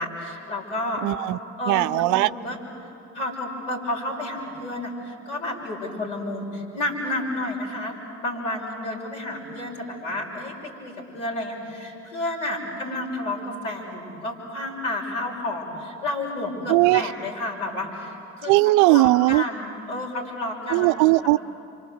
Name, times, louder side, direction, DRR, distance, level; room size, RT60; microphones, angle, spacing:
voice 1, 0.0-1.0 1.6-2.6 3.1-21.3, left 1 dB, 75° left, -2 dB, 6.3 m, -31 dB
voice 2, 1.0-1.4 1.7-2.3 16.7-17.0 18.5-19.4 20.7-21.4, right 20 dB, 55° right, 13 dB, 0.5 m, -18 dB
29.5 x 25.0 x 8.0 m, 2.7 s
figure-of-eight pair, 50°, 36 cm